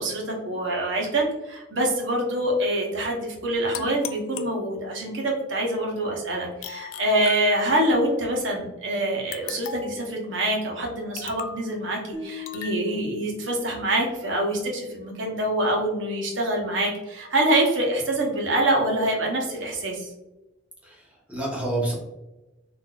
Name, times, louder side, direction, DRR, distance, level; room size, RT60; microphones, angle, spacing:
voice 1, 0.0-20.1, right 1 dB, 70° right, -1 dB, 0.9 m, -25 dB
sound 1, 3.7-5.1 6.6-8.0 9.3-10.1 11.2-11.7 12.5-12.8, left 8 dB, 90° left, 0.3 m, -37 dB
sound 2, 12.1-15.3, left 5 dB, 20° left, 0.5 m, -42 dB
voice 2, 20.8-21.9, right 2 dB, 5° right, -3 dB, 0.8 m, -29 dB
3.9 x 2.6 x 2.3 m, 1.0 s
head